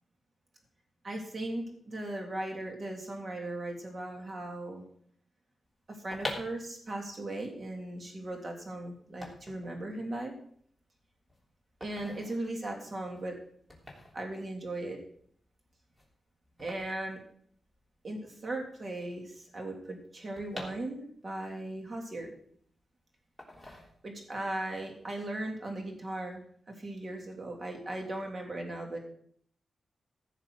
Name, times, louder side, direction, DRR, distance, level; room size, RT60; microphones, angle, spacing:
voice 1, 1.0-4.8 5.9-10.3 11.8-13.4 14.1-15.0 16.6-17.2 18.0-22.3 24.0-29.0, right 1 dB, 40° right, 2 dB, 3.2 m, -38 dB
sound 1, 5.9-18.0 18.3-18.4 18.5-21.4 21.8-22.8 23.4-24.4 24.7-25.0, left 1 dB, 5° right, 3.3 m, -46 dB
15.5 x 6.7 x 6.2 m, 0.62 s
wide cardioid pair, 120°, 0 cm